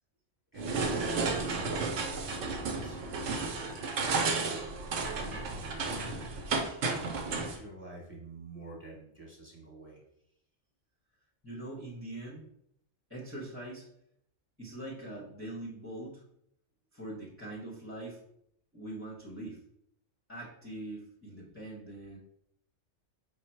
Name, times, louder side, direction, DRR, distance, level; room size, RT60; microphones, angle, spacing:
voice 1, 0.5-6.5 6.9-10.0, right 1 dB, 10° right, -2 dB, 1.0 m, -50 dB
sound 1, 0.6-7.6, right 4 dB, 75° right, 1.0 m, -32 dB
voice 2, 11.4-12.5 13.1-13.9 14.6-16.2 16.9-18.2 18.7-19.6 20.3-22.2, right 1 dB, 15° left, -5 dB, 0.7 m, -42 dB
5.2 x 2.1 x 4.3 m, 0.73 s
omnidirectional pair, 1.3 m